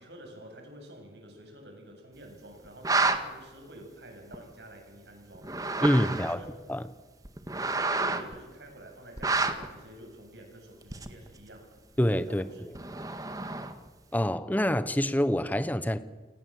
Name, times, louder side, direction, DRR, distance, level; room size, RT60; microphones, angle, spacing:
voice 1, 0.0-6.5 7.7-11.8 12.3-12.6, right 1 dB, 75° right, 7.9 m, -49 dB
sound 1, 2.6-3.2 4.3-4.4 5.3-6.5 7.2-8.3 9.2-9.7 10.9-11.3 12.7-13.9, right 3 dB, 20° right, 1.7 m, -29 dB
voice 2, 5.8-6.4 6.7-6.8 12.0-12.4 14.1-16.0, equal, 10° left, 0.8 m, -26 dB
29.0 x 18.5 x 7.9 m
head